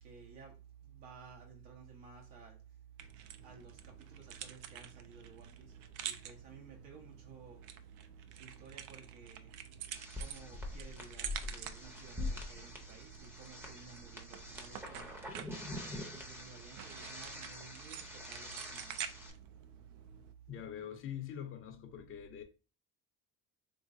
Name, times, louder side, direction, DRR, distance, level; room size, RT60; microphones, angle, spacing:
voice 1, 0.0-0.5 0.8-2.6 3.4-5.7 6.0-7.6 8.3-9.5 10.2-15.2 15.7-19.0, right 6 dB, 85° right, 1.5 m, -53 dB
sound 1, 3.0-20.3, right 9 dB, 65° right, 0.5 m, -49 dB
sound 2, 9.9-19.3, left 2 dB, 5° right, 0.7 m, -45 dB
voice 2, 20.5-22.4, left 9 dB, 35° left, 0.7 m, -44 dB
3.3 x 3.1 x 2.5 m
cardioid pair, 115°, 35 cm